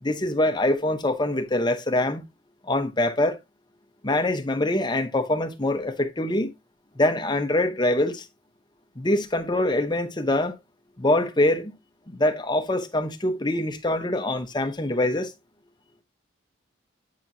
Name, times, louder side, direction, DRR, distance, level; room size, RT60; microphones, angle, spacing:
voice 1, 0.0-2.2 2.7-3.4 4.0-6.5 7.0-8.3 9.0-10.6 11.0-11.7 12.1-15.3, left 1 dB, 20° left, 0.7 m, -24 dB
8.5 x 4.4 x 2.6 m
head